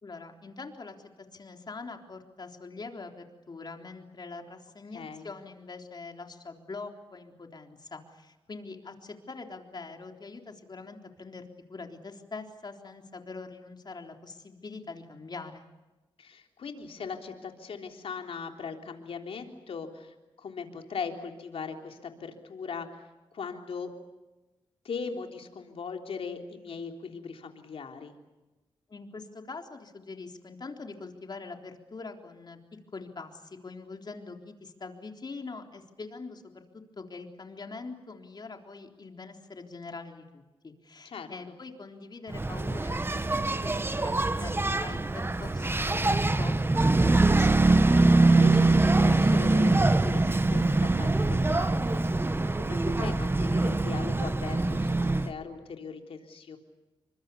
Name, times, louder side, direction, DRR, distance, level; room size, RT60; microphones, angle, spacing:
voice 1, 0.0-1.0 1.3-11.4 11.7-15.7 28.9-32.6 32.9-43.0 43.3-46.6 47.0-47.6, left 3 dB, 50° left, 4 dB, 3.7 m, -43 dB
voice 2, 4.9-5.3 16.2-22.9 23.3-23.9 24.8-28.1 41.1-41.3 48.3-56.6, left 5 dB, 80° left, 4 dB, 3.6 m, -39 dB
Engine, 42.3-55.3, right 2 dB, 25° right, 1.2 m, -24 dB
29.5 x 24.5 x 7.1 m, 1.1 s
cardioid pair, 75°, 10 cm